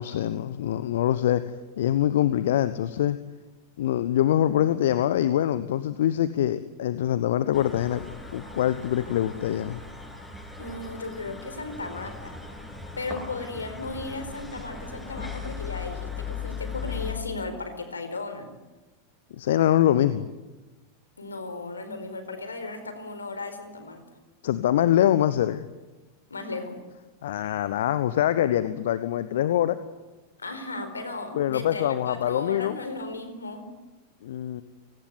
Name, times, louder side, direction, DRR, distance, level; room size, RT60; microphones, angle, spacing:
voice 1, 0.0-1.4 1.8-3.2 3.8-8.0 8.3-9.8 19.3-20.3 24.4-25.7 27.2-29.8 31.3-32.7 34.2-34.6, left 11 dB, 60° left, 14 dB, 1.1 m, -24 dB
sound 1, 7.5-17.1, left 5 dB, 5° left, 7.4 m, -38 dB
voice 2, 10.6-12.3 13.0-18.5 21.2-24.0 26.3-26.8 30.4-33.7, left 3 dB, 75° left, 10 dB, 4.5 m, -36 dB
29.5 x 19.0 x 9.6 m, 1.2 s
figure-of-eight pair, 90°, 0 cm